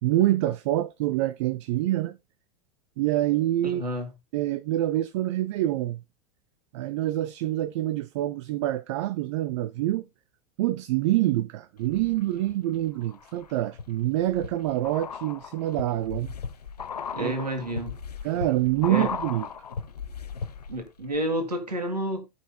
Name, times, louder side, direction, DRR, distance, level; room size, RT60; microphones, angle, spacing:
voice 1, 0.0-2.2 3.0-3.8 4.3-6.0 6.7-10.1 10.6-16.3 17.2-17.5 18.2-19.5, right 14 dB, 50° right, 0.5 m, -26 dB
voice 2, 3.6-4.1 17.1-17.9 18.9-19.1 20.7-22.3, right 1 dB, 80° right, 1.7 m, -30 dB
sound 1, 11.8-12.5 13.0-20.9 21.1-21.2, left 6 dB, 75° left, 0.6 m, -37 dB
15.5 x 5.6 x 2.2 m
figure-of-eight pair, 85°, 20 cm